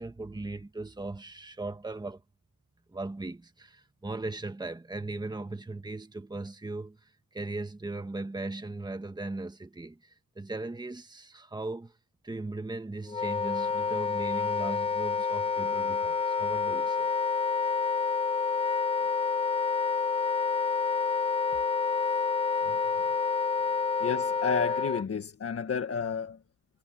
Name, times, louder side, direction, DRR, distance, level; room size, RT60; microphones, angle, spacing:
voice 1, 0.0-2.2 2.9-11.9 12.2-17.1 22.6-22.9 23.8-23.9, right 2 dB, 10° right, 1.5 m, -38 dB
Wind instrument woodwind instrument, 13.1-25.0, left 5 dB, 15° left, 0.4 m, -28 dB
voice 2, 24.0-26.4, left 6 dB, 40° left, 1.7 m, -31 dB
wide cardioid pair, 150°, 36 cm